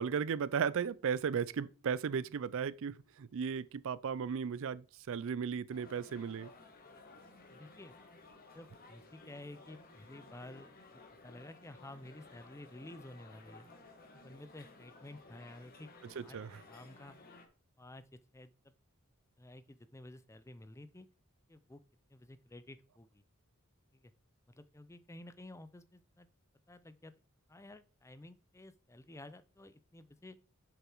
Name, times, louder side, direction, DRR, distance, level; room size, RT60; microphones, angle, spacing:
voice 1, 0.0-6.5 16.2-16.6, right 6 dB, 60° right, 0.4 m, -35 dB
sound 1, 5.7-17.5, left 3 dB, 40° left, 1.6 m, -57 dB
voice 2, 7.5-7.9 8.5-13.7 14.1-15.9 16.2-16.4 16.7-17.2 17.8-18.7 19.4-21.1 21.5-21.8 22.1-23.2 23.9-24.1 24.5-26.3 26.7-27.1 27.5-30.4, left 1 dB, 15° left, 0.5 m, -52 dB
7.3 x 6.9 x 4.5 m
head